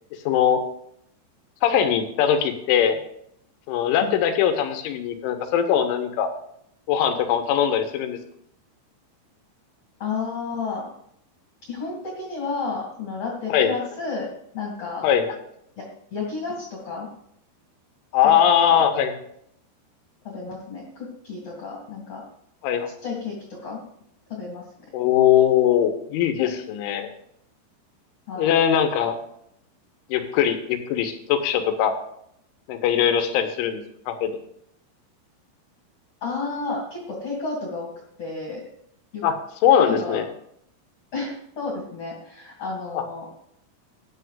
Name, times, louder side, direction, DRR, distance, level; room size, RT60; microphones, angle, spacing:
voice 1, 0.3-0.6 1.6-3.0 3.7-6.3 6.9-8.2 13.5-13.9 15.0-15.4 18.1-19.1 22.6-22.9 24.9-27.1 28.4-29.2 30.1-31.9 32.7-34.3 39.2-39.3 39.6-40.3 42.9-43.0, left 9 dB, 85° left, 6 dB, 3.4 m, -21 dB
voice 2, 10.0-10.9 11.7-14.3 14.5-15.1 15.8-17.1 18.2-18.8 20.2-22.2 23.0-23.8 24.3-24.6 28.3-28.5 36.2-37.9 38.2-38.6 39.1-39.2 39.8-40.2 41.1-43.3, left 4 dB, 40° left, -2 dB, 2.5 m, -31 dB
16.0 x 10.0 x 2.5 m, 0.71 s
omnidirectional pair, 5.5 m